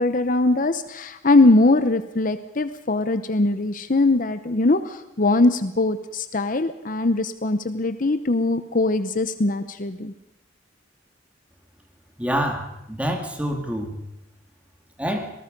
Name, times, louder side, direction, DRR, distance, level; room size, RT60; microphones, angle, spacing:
voice 1, 0.0-10.1, left 2 dB, 40° left, 10 dB, 0.8 m, -21 dB
voice 2, 12.2-14.0 15.0-15.3, equal, 5° right, 3 dB, 2.3 m, -26 dB
26.0 x 19.0 x 5.3 m, 0.87 s
head